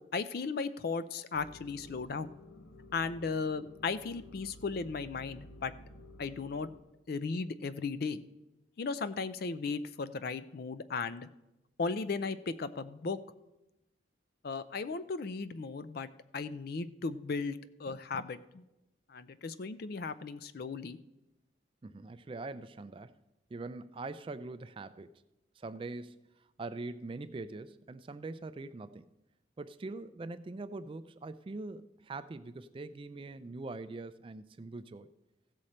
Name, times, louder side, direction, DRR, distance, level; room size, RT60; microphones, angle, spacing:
voice 1, 0.1-2.3 2.9-5.7 6.2-6.7 7.1-8.2 8.8-11.3 11.8-13.2 14.4-16.1 16.3-18.6 19.1-21.0, left 4 dB, 50° left, 14 dB, 0.4 m, -36 dB
sound 1, 1.3-6.8, left 1 dB, 85° left, 0.8 m, -53 dB
voice 2, 21.8-23.2 23.5-25.1 25.6-26.3 26.6-29.1 29.6-35.1, right 3 dB, 25° right, 12 dB, 0.3 m, -43 dB
15.5 x 6.4 x 4.3 m, 0.94 s
head